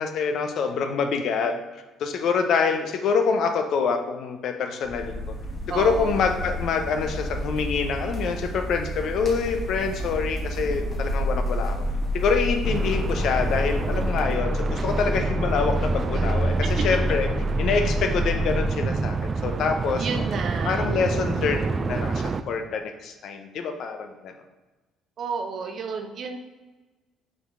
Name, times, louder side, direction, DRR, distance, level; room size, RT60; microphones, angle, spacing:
voice 1, 0.0-1.6 2.0-5.2 5.7-11.8 12.1-17.3 17.6-20.2 20.6-24.3, left 5 dB, 60° left, 6 dB, 0.7 m, -26 dB
sound 1, 4.8-14.2, equal, 40° left, 1.4 m, -32 dB
voice 2, 5.7-6.2 16.2-16.3 20.0-21.0 25.2-26.4, right 5 dB, 55° right, 5 dB, 0.8 m, -31 dB
sound 2, 11.0-18.7, left 1 dB, 85° right, 1.2 m, -27 dB
sound 3, 12.6-22.4, right 4 dB, 35° right, 0.4 m, -28 dB
6.4 x 4.6 x 3.7 m, 1.2 s
hypercardioid pair, 50°, 0 cm